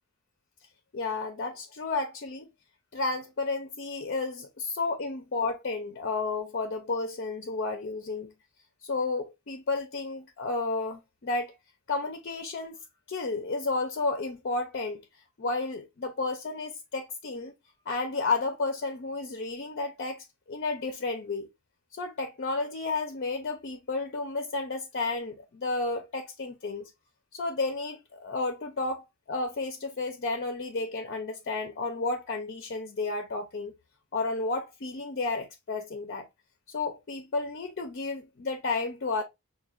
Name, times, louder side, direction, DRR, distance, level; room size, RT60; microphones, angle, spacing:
voice 1, 0.9-2.5 2.9-8.3 8.8-11.6 11.9-12.8 13.1-15.0 15.4-17.5 17.9-21.5 21.9-26.9 27.3-33.7 34.1-36.3 36.7-39.2, left 3 dB, 50° left, 0.5 m, -32 dB
5.8 x 2.2 x 2.3 m
head